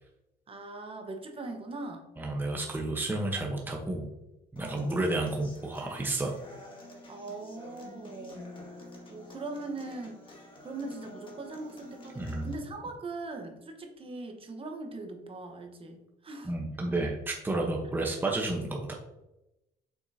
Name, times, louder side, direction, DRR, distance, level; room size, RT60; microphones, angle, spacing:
voice 1, 0.5-2.1 4.6-5.0 7.1-8.5 9.1-16.5, right 2 dB, 35° right, 4 dB, 1.2 m, -41 dB
voice 2, 2.2-4.1 4.5-6.3 12.1-12.5 16.4-18.9, right 2 dB, 10° right, 0 dB, 1.0 m, -31 dB
Human voice / Acoustic guitar, 4.6-12.5, left 1 dB, 30° left, 2.0 m, -49 dB
7.4 x 6.2 x 2.8 m, 0.92 s
cardioid pair, 110°, 17 cm